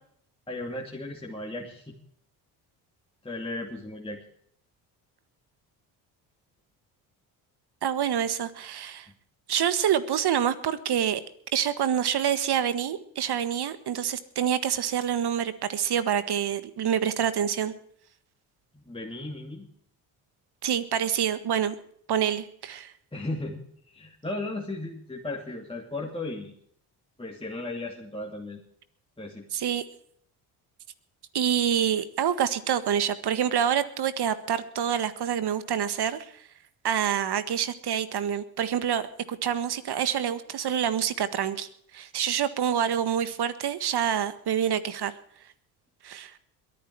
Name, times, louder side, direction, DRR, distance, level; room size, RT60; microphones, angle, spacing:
voice 1, 0.5-2.0 3.2-4.2 18.7-19.7 23.1-26.5 27.2-28.6 29.2-29.5, left 2 dB, 10° left, -1 dB, 2.7 m, -36 dB
voice 2, 7.8-9.1 9.5-11.2 11.5-17.7 20.6-21.7 22.1-22.9 29.5-29.8 31.3-36.3 36.8-39.0 39.3-41.7 41.9-45.1 46.0-46.3, right 9 dB, 55° right, 13 dB, 1.7 m, -27 dB
22.0 x 9.9 x 4.7 m, 0.65 s
supercardioid pair, 65°, 47 cm